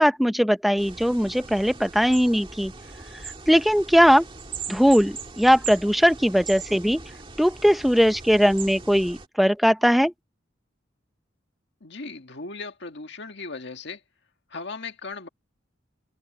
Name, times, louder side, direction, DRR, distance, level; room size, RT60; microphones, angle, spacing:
voice 1, 0.0-2.7 3.5-4.3 4.7-7.0 7.4-10.1, equal, ahead, 0.7 m, -19 dB
sound 1, 0.8-9.3, right 5 dB, 30° right, 1.8 m, -40 dB
voice 2, 11.8-14.0 14.5-15.3, left 3 dB, 65° left, 1.9 m, -37 dB
head